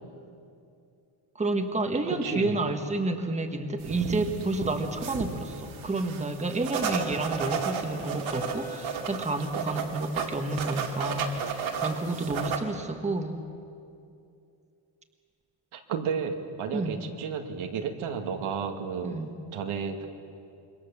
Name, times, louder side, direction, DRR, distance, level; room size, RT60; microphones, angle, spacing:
voice 1, 1.3-13.4 16.7-17.0 19.0-19.4, right 2 dB, 15° right, 5 dB, 1.4 m, -30 dB
voice 2, 2.1-2.6 15.7-19.2 19.5-20.1, right 6 dB, 85° right, 4 dB, 2.3 m, -32 dB
sound 1, 3.8-12.6, right 6 dB, 70° right, 2.7 m, -33 dB
sound 2, 5.7-5.8 6.4-10.2, left 1 dB, 15° left, 2.1 m, -44 dB
27.0 x 23.5 x 7.2 m, 2.5 s
cardioid pair, 170°, 48 cm